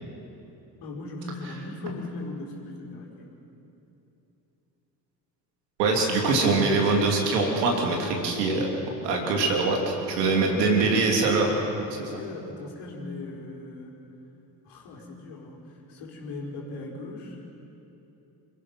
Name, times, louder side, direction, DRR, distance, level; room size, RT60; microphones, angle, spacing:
voice 1, 0.8-3.3 10.2-11.0 11.8-14.0 14.6-17.4, left 2 dB, 55° left, -2 dB, 4.8 m, -39 dB
voice 2, 5.8-8.7 9.0-11.5 12.0-12.2, right 3 dB, 70° right, 0 dB, 3.3 m, -23 dB
28.5 x 15.0 x 6.1 m, 3.0 s
figure-of-eight pair, 50°, 49 cm